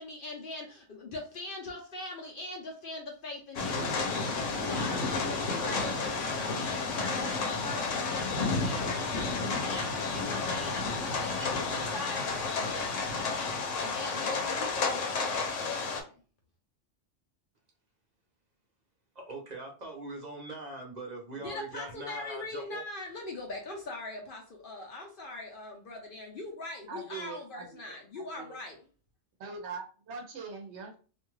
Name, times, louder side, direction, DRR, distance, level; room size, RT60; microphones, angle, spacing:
voice 1, 0.0-16.2 21.3-28.9, left 2 dB, 55° left, 0.7 m, -42 dB
sound 1, 3.6-16.0, left 4 dB, 90° left, 1.0 m, -31 dB
voice 2, 19.1-22.8, right 2 dB, 40° right, 0.8 m, -41 dB
voice 3, 26.9-28.6 29.4-30.9, right 4 dB, 70° right, 0.9 m, -42 dB
2.5 x 2.3 x 3.0 m
omnidirectional pair, 1.2 m